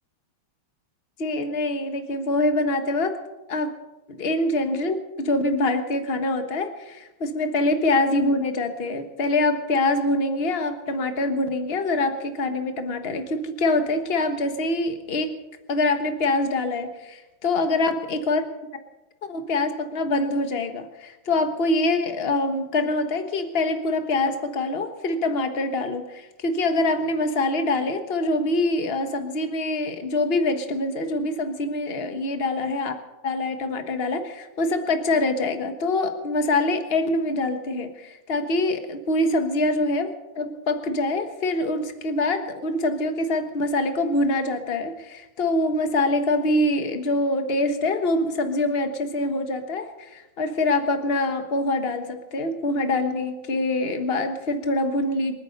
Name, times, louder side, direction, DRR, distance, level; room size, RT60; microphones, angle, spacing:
voice 1, 1.2-3.2 3.5-3.7 4.1-15.4 15.7-18.4 19.2-55.4, left 2 dB, 35° left, 7 dB, 1.4 m, -25 dB
27.0 x 9.6 x 5.3 m, 1.0 s
omnidirectional pair, 2.2 m